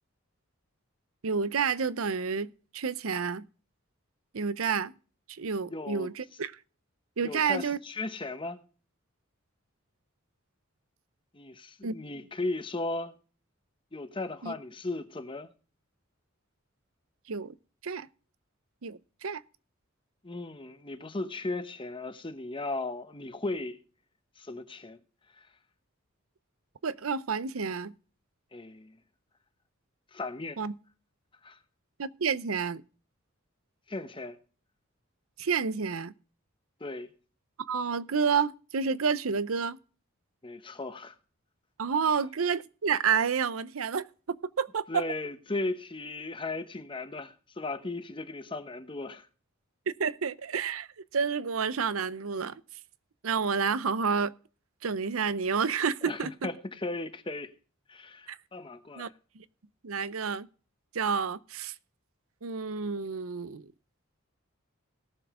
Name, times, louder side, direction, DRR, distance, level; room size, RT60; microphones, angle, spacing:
voice 1, 1.2-3.5 4.3-4.9 5.3-6.5 7.2-7.8 11.8-12.0 14.4-14.5 17.3-17.5 17.8-18.1 18.8-19.4 26.8-27.9 30.6-30.7 32.0-32.8 35.4-36.1 37.6-39.8 41.8-45.0 49.9-50.9 51.1-52.5 53.2-54.3 54.8-56.3 58.3-58.4 59.0-59.1 59.4-59.5 59.8-60.5 60.9-61.7 62.4-63.7, right 6 dB, 85° right, 0.7 m, -29 dB
voice 2, 5.7-6.1 7.2-8.6 11.3-13.2 13.9-15.5 20.2-23.8 24.4-25.0 25.4-25.5 28.5-29.0 30.1-30.6 31.4-31.6 33.9-34.4 36.8-37.1 40.4-41.1 44.9-49.3 56.0-57.5 57.9-59.1, left 2 dB, 25° left, 1.0 m, -36 dB
18.5 x 7.1 x 3.7 m
head